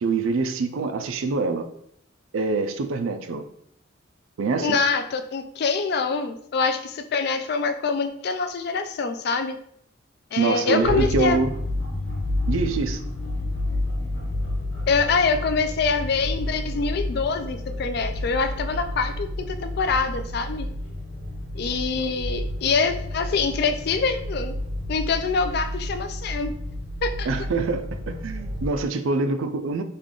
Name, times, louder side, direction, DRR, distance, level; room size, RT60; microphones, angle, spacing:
voice 1, 0.0-1.7 2.3-3.4 4.4-4.8 10.4-11.5 12.5-13.0 22.0-22.1 27.3-29.8, right 4 dB, 85° right, 8 dB, 0.4 m, -25 dB
voice 2, 4.6-9.6 10.3-11.4 14.9-20.7 21.5-24.5 24.9-26.5 27.0-27.3, left 4 dB, 50° left, 9 dB, 0.3 m, -25 dB
sound 1, 10.8-28.7, left 1 dB, 90° left, 0.9 m, -30 dB
3.3 x 2.4 x 3.7 m, 0.69 s
head